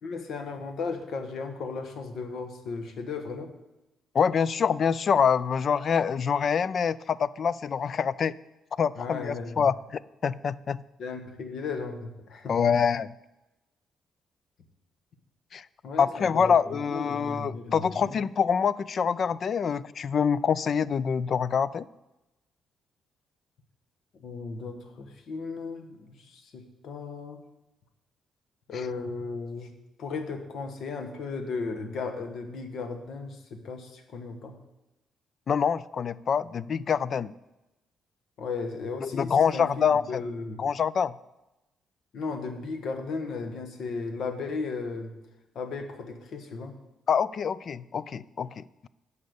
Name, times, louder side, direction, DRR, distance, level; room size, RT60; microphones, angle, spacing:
voice 1, 0.0-3.5 9.0-9.7 11.0-12.6 15.8-18.2 24.2-27.4 28.7-29.7 30.0-34.6 38.4-40.6 42.1-45.1 45.5-46.7, left 4 dB, 65° left, 6 dB, 1.3 m, -35 dB
voice 2, 4.1-8.3 8.8-9.7 10.2-10.8 12.5-13.1 15.5-15.6 16.0-21.9 35.5-37.3 39.0-40.2 40.6-41.1 47.1-48.9, left 7 dB, 50° left, 19 dB, 0.3 m, -25 dB
10.5 x 5.4 x 6.8 m, 0.98 s
cardioid pair, 90°, 0 cm